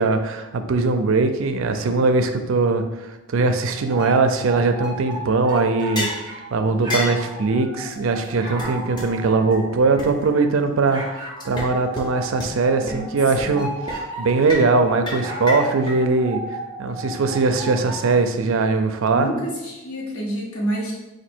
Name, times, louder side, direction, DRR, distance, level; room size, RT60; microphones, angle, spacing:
voice 1, 0.0-2.8 3.3-6.1 6.5-16.4 16.8-19.3, right 3 dB, 65° right, 8 dB, 0.4 m, -20 dB
sound 1, 3.8-6.5 6.8-10.5 10.9-14.7 15.1-18.0, right 1 dB, 20° right, 0.8 m, -35 dB
sound 2, 6.0-6.2 6.9-7.2 7.9-8.0 8.2-8.3 8.6-8.7 9.0-9.1 9.5-9.6 10.0-10.1 11.4-11.7 12.0-12.1 12.4-12.5 12.9-13.0 13.4-13.6 13.9-14.0 14.5-14.7 15.1-16.0, left 1 dB, 20° left, 0.7 m, -28 dB
voice 2, 12.8-13.1 13.4-13.6 19.1-20.9, right 1 dB, 80° left, -4 dB, 1.3 m, -28 dB
4.4 x 2.6 x 4.3 m, 1.0 s
head